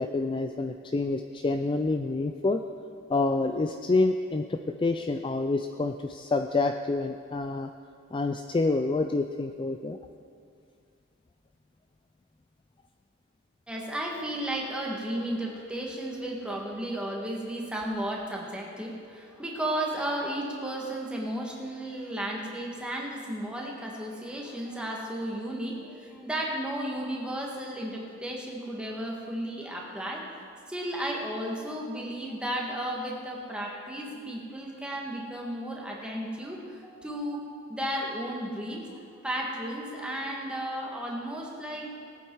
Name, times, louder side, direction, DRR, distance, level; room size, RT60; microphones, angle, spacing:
voice 1, 0.0-2.6 3.1-7.7 8.1-10.0, left 3 dB, 25° left, 6 dB, 0.4 m, -27 dB
voice 2, 13.7-30.3 30.7-37.4 37.7-41.9, right 1 dB, 5° right, -2 dB, 1.7 m, -34 dB
19.5 x 8.6 x 4.7 m, 2.3 s
head